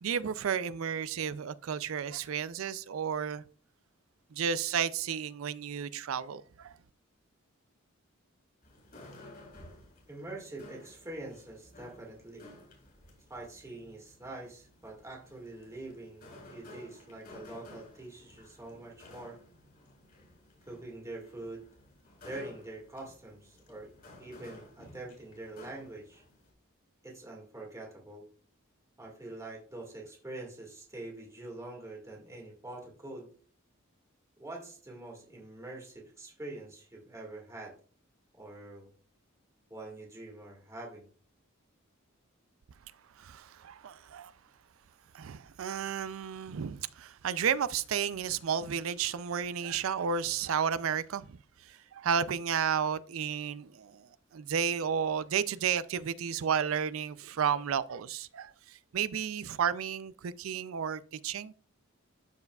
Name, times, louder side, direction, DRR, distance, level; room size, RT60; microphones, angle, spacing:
voice 1, 0.0-3.4 4.3-6.8 43.2-44.3 45.1-61.5, right 7 dB, 80° right, 0.4 m, -32 dB
sound 1, 8.6-26.5, left 2 dB, 45° left, 4.0 m, -54 dB
voice 2, 10.1-12.5 13.3-19.4 20.7-21.6 22.2-23.9 24.2-26.2 27.0-28.3 29.0-33.3 34.4-37.8 38.3-38.9 39.7-41.1, right 2 dB, 15° right, 2.0 m, -45 dB
13.0 x 4.7 x 2.4 m
head